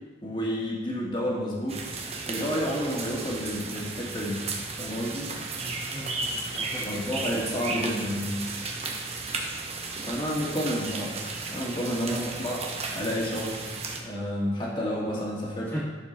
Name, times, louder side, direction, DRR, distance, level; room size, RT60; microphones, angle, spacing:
voice 1, 0.2-1.8 2.3-4.4 4.8-5.3 6.8-8.4 10.1-11.1 11.5-13.6 14.0-15.8, equal, 25° left, -4 dB, 2.1 m, -30 dB
sound 1, 1.7-14.0, right 3 dB, 35° right, 1.1 m, -34 dB
voice 2, 5.6-7.0 12.1-12.2 14.7-14.8 15.7-15.8, equal, 10° left, -11 dB, 2.0 m, -38 dB
11.5 x 7.1 x 4.2 m, 1.3 s
head